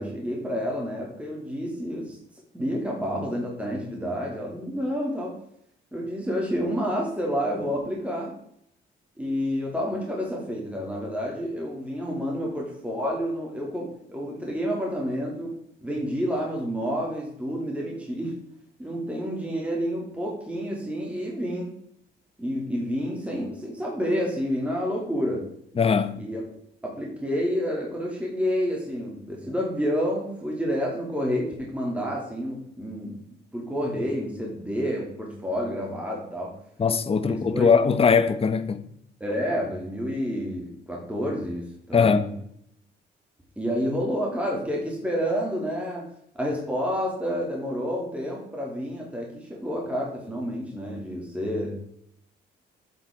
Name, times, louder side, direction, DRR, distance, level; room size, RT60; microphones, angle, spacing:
voice 1, 0.0-2.2 2.5-5.4 5.9-8.4 9.2-15.5 15.8-18.4 18.8-21.7 22.4-25.5 26.2-26.4 26.8-33.2 33.5-36.6 37.3-37.7 39.2-42.3 43.6-46.1 46.3-51.8, equal, 5° right, 2.5 m, -29 dB
voice 2, 25.8-26.2 36.8-38.9 41.9-42.2, left 5 dB, 30° left, 0.8 m, -21 dB
8.0 x 7.7 x 3.6 m
cardioid pair, 90°, 20 cm